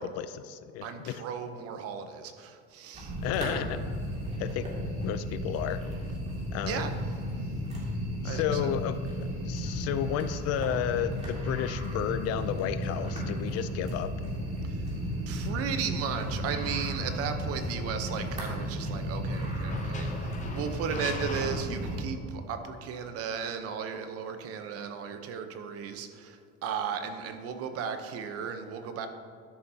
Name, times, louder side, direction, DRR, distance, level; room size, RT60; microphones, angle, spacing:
voice 1, 0.0-1.2 3.2-3.8 4.4-4.7 5.0-5.8 6.5-6.9 8.2-14.1, left 10 dB, 55° left, 13 dB, 0.4 m, -32 dB
voice 2, 0.8-3.1 6.6-6.9 8.2-8.7 14.6-14.8 15.3-29.1, right 7 dB, 50° right, 7 dB, 0.8 m, -35 dB
sound 1, 2.9-22.1, equal, 20° right, 2.3 m, -34 dB
sound 2, 17.0-17.2 19.5-22.3, left 4 dB, 25° left, 0.8 m, -42 dB
12.5 x 6.8 x 2.8 m, 2.2 s
cardioid pair, 135°, 30 cm